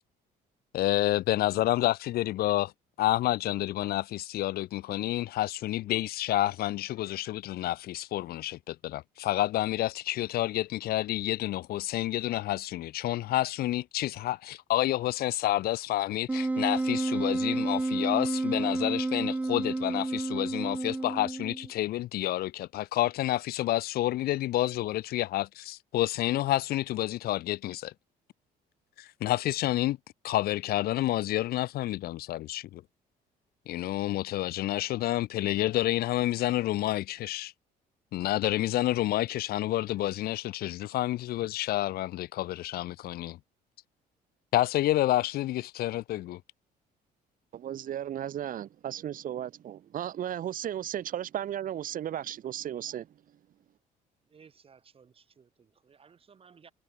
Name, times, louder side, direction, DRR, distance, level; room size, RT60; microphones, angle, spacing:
voice 1, 0.7-2.7 3.0-27.9 29.0-30.0 30.2-32.8 33.7-37.5 38.1-43.4 44.5-46.4, left 15 dB, 65° left, 0.6 m, -29 dB
Wind instrument woodwind instrument, 16.3-21.7, right 2 dB, 10° right, 0.4 m, -30 dB
voice 2, 47.5-53.1, right 11 dB, 55° right, 2.0 m, -35 dB
voice 3, 54.3-56.7, right 6 dB, 35° right, 3.4 m, -58 dB
cardioid pair, 110°, 17 cm